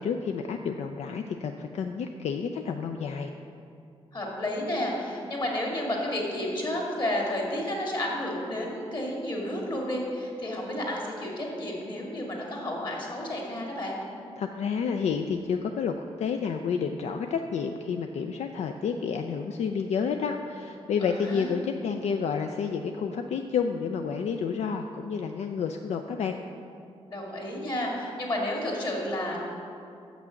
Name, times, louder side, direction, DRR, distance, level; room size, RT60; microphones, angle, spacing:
voice 1, 0.0-3.3 14.4-26.4, left 6 dB, 75° left, 5 dB, 0.4 m, -30 dB
voice 2, 4.1-14.0 21.0-21.5 27.1-29.4, left 1 dB, 40° left, -1 dB, 2.1 m, -31 dB
6.9 x 6.0 x 7.6 m, 2.5 s
wide cardioid pair, 115°, 11 cm